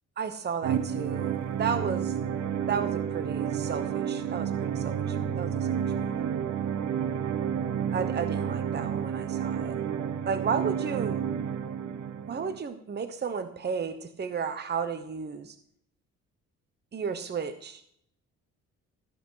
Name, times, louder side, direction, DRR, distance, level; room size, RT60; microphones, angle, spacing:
voice 1, 0.2-2.2 2.7-5.7 7.9-9.8 10.3-11.2 12.3-15.6 16.9-17.8, right 6 dB, 35° right, 10 dB, 0.9 m, -33 dB
sound 1, 0.6-12.6, right 8 dB, 65° right, 0.9 m, -30 dB
13.5 x 6.0 x 5.6 m, 0.69 s
cardioid pair, 90°, 30 cm